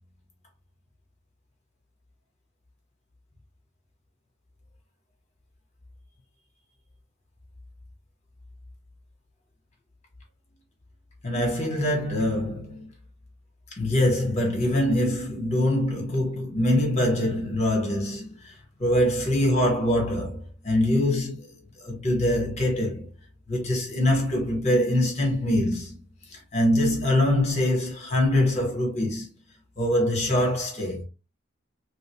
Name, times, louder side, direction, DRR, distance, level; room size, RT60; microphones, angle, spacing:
voice 1, 11.2-12.9 13.8-18.5 18.8-21.5 21.8-23.1 23.5-26.0 26.5-29.3 29.8-31.0, left 1 dB, 35° left, 1.5 m, -24 dB
3.2 x 2.8 x 3.0 m
head